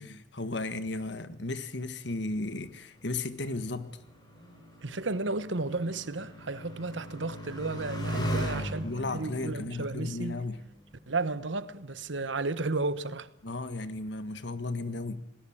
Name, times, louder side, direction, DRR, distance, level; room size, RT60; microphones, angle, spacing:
voice 1, 0.0-3.9 8.1-8.5 8.8-10.6 13.4-15.2, left 2 dB, 75° left, 1.6 m, -35 dB
Motorcycle, 2.4-11.3 12.1-12.7, right 1 dB, 25° left, 6.7 m, -39 dB
voice 2, 4.8-8.9 9.1-10.4 11.1-13.3, right 3 dB, 90° right, 1.2 m, -33 dB
19.5 x 17.5 x 8.8 m
head